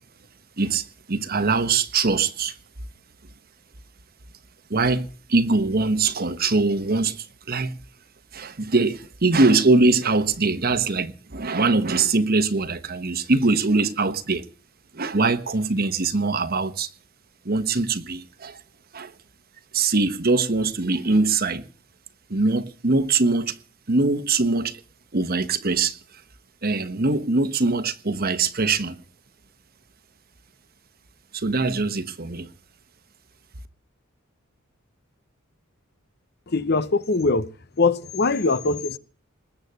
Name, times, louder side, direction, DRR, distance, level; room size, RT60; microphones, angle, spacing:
voice 1, 0.6-2.5 4.7-7.8 8.3-14.5 14.9-16.9 17.4-18.6 18.9-19.1 19.7-21.7 22.3-23.6 23.9-24.8 25.1-26.0 26.6-29.0 31.3-32.5, right 3 dB, 45° right, 1.1 m, -22 dB
voice 2, 36.5-37.5 37.8-39.0, left 3 dB, 50° left, 0.8 m, -22 dB
20.5 x 8.1 x 8.0 m
head